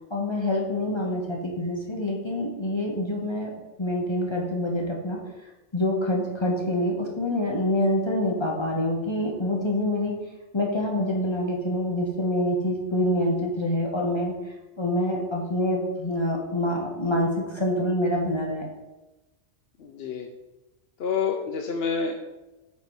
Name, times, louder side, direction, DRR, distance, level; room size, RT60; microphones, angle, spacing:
voice 1, 0.1-3.5 3.8-10.1 10.5-14.3 14.8-18.7, left 1 dB, 25° left, -2 dB, 1.2 m, -26 dB
voice 2, 19.8-20.3 21.0-22.2, left 5 dB, 60° left, 3 dB, 0.9 m, -28 dB
8.3 x 4.1 x 4.8 m, 1.0 s
omnidirectional pair, 1.2 m